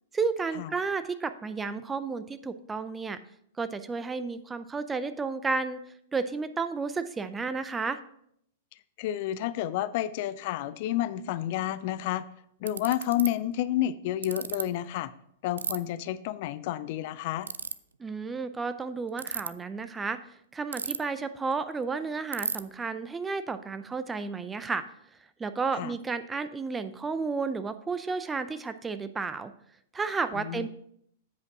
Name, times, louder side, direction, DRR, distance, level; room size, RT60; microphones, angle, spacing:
voice 1, 0.1-3.2 3.6-5.8 6.1-8.0 18.0-20.2 20.5-24.8 25.4-29.5 29.9-30.7, right 4 dB, 15° right, 11 dB, 0.5 m, -32 dB
voice 2, 9.0-12.3 12.6-15.1 15.4-17.5 25.7-26.0 30.4-30.7, left 13 dB, 50° left, 15 dB, 0.4 m, -30 dB
Ratchet pawl, 12.0-12.1 12.7-13.3 14.2-14.6 15.6-15.8 17.4-17.7 19.1-19.5 20.7-21.2 21.5-21.6 21.8-21.9 22.3-22.6, right 6 dB, 75° right, 0.3 m, -32 dB
8.3 x 5.2 x 4.8 m, 0.70 s
figure-of-eight pair, 100°, 0 cm